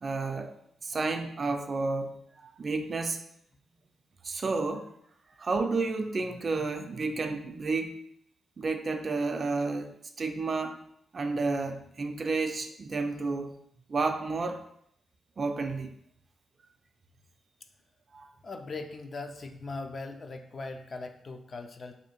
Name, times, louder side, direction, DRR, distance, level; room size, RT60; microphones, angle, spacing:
voice 1, 0.0-0.5 0.8-3.2 4.2-4.9 5.4-8.0 8.6-10.8 11.1-13.6 13.9-14.6 15.4-15.9 18.1-18.3, right 3 dB, 45° right, 6 dB, 0.4 m, -31 dB
voice 2, 18.4-21.9, left 3 dB, 45° left, 5 dB, 0.4 m, -40 dB
2.6 x 2.5 x 4.2 m, 0.70 s
cardioid pair, 80°, 0 cm